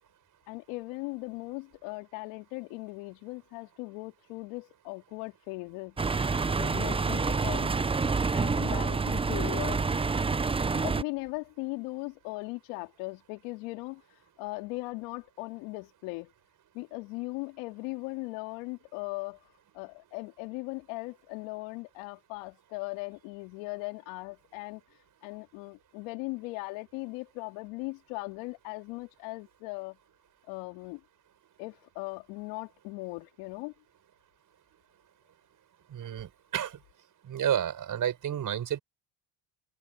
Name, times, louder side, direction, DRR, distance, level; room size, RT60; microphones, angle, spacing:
voice 1, 0.5-5.9 6.6-7.7 8.3-9.9 10.7-14.0 14.4-16.3 16.7-19.4 19.7-24.8 25.2-30.0 30.5-31.0 31.6-33.7, left 25 dB, 80° left, 3.3 m, -38 dB
sound 1, 6.0-11.0, right 4 dB, 15° right, 0.7 m, -28 dB
voice 2, 35.9-36.8 37.3-38.8, right 9 dB, 45° right, 5.4 m, -31 dB
supercardioid pair, 90°, 44 cm